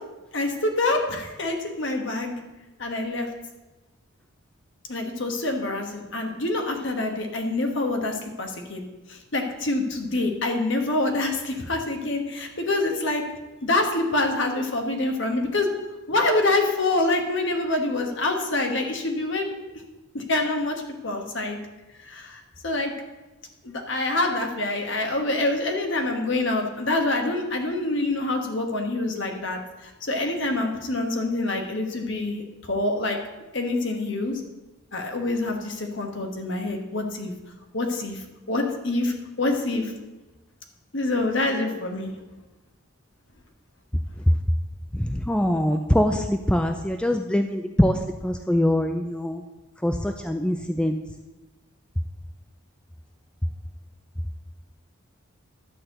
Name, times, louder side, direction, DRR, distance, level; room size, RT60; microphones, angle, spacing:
voice 1, 0.3-2.4 2.8-3.3 4.9-8.8 9.3-13.2 13.6-15.7 16.1-19.5 20.1-20.7 21.0-21.6 22.1-22.9 23.6-29.6 30.0-32.4 32.7-33.2 33.5-34.4 34.9-37.3 37.7-38.2 38.5-39.9 40.9-42.1, left 2 dB, 55° left, 3 dB, 1.4 m, -26 dB
voice 2, 45.1-47.9 48.2-49.4 49.8-50.9, left 1 dB, 5° left, 6 dB, 0.3 m, -23 dB
11.0 x 4.2 x 7.7 m, 1.1 s
head